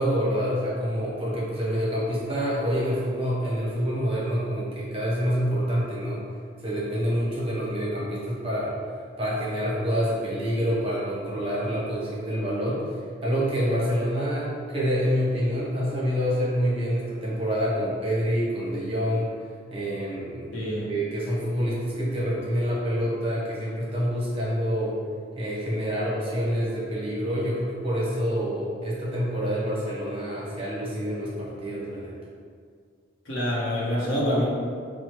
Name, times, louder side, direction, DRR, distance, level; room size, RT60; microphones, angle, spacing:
voice 1, 0.0-6.3 6.6-8.7 9.2-12.9 13.2-19.3 19.7-20.5 20.8-25.0 25.4-32.2, equal, 30° right, -6 dB, 0.7 m, -27 dB
voice 2, 20.5-20.8 33.3-34.4, equal, 70° left, -6 dB, 0.7 m, -26 dB
4.3 x 2.0 x 3.0 m, 2.1 s
head